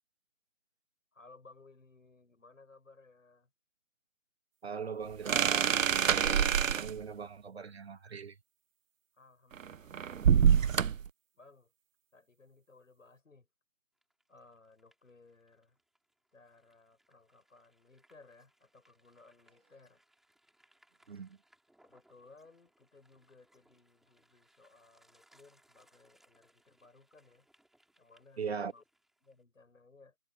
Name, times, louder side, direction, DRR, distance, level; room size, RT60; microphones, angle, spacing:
voice 1, 1.1-3.5 9.1-10.8 11.3-11.7 12.1-13.5 14.3-15.8 16.3-20.0 21.8-27.5 28.0-28.8 29.2-30.2, left 3 dB, 65° left, 7.1 m, -60 dB
voice 2, 4.6-8.4 21.1-21.4 28.4-28.7, right 6 dB, 50° right, 2.4 m, -41 dB
sound 1, 5.3-7.0 9.5-11.1, right 8 dB, 65° right, 0.5 m, -26 dB
sound 2, 14.0-29.4, right 1 dB, ahead, 5.0 m, -71 dB
figure-of-eight pair, 150°, 42 cm